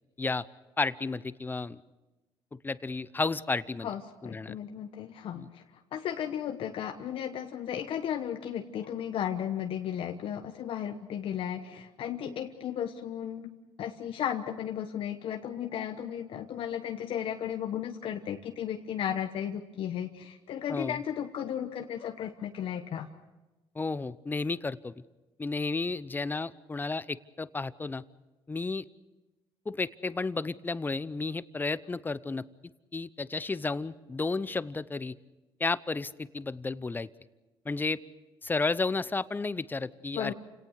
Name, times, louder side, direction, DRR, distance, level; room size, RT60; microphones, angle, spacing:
voice 1, 0.8-1.8 2.5-3.9 4.2-4.6 5.4-5.5 20.7-21.0 23.7-24.9 25.4-28.0 28.5-28.8 29.7-32.5 32.9-35.1 35.6-37.1 37.6-38.0 38.4-40.3, left 3 dB, 20° left, 17 dB, 0.7 m, -32 dB
voice 2, 3.8-23.1 40.1-40.3, left 9 dB, 65° left, 5 dB, 1.2 m, -35 dB
28.5 x 18.0 x 6.6 m, 1.1 s
cardioid pair, 95°, 10 cm